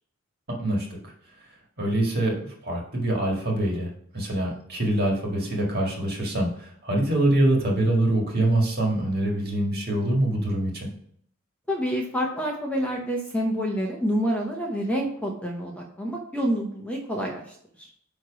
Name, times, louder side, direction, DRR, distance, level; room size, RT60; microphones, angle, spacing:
voice 1, 0.6-1.1 1.8-10.9, right 1 dB, 45° right, -1 dB, 1.8 m, -25 dB
voice 2, 11.7-17.9, equal, 5° left, -1 dB, 0.8 m, -28 dB
9.4 x 3.1 x 5.1 m, 0.65 s
head